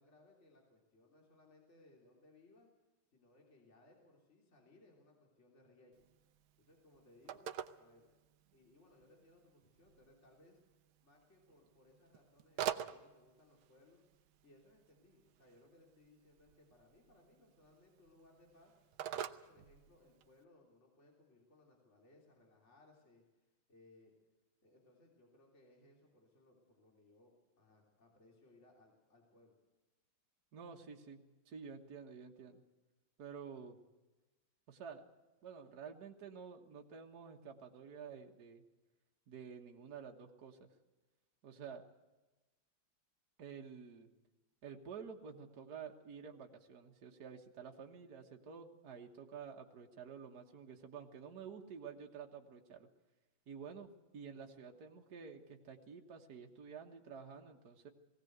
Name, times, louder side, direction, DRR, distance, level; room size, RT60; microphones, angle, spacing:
voice 1, 0.0-2.7 3.1-6.1 6.6-8.1 8.5-10.6 11.0-14.0 14.4-18.8 19.2-24.1 24.6-29.6, left 2 dB, 30° left, 0 dB, 3.6 m, -66 dB
Telephone, 5.9-20.4, right 10 dB, 80° right, 1.6 m, -48 dB
voice 2, 30.5-32.6 33.2-33.8 34.7-35.0 35.4-38.6 39.3-40.7 41.4-41.8 43.4-44.1 44.6-52.9 53.5-57.9, right 6 dB, 50° right, 2 dB, 1.8 m, -50 dB
20.0 x 17.5 x 8.0 m, 1.1 s
omnidirectional pair, 2.3 m